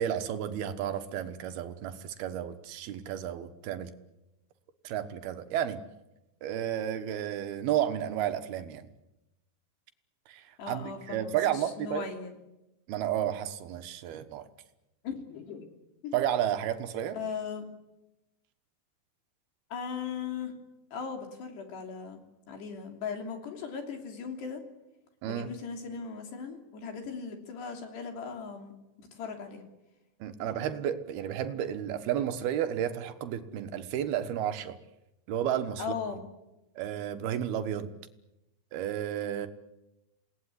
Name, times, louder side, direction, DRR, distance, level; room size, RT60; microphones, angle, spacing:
voice 1, 0.0-3.9 4.8-5.8 6.4-8.9 10.3-12.1 12.9-14.5 16.1-17.2 25.2-25.5 30.2-34.8 35.3-36.0 36.8-37.9 38.7-39.5, right 10 dB, 65° right, 9 dB, 2.7 m, -32 dB
voice 2, 10.6-12.4 15.0-15.7 16.0-16.1 17.1-17.7 19.7-20.5 20.9-22.2 22.5-24.6 25.3-29.6 30.4-30.5 35.8-36.2, left 6 dB, 60° left, 4 dB, 5.0 m, -38 dB
27.5 x 19.5 x 10.0 m, 0.94 s
omnidirectional pair, 5.7 m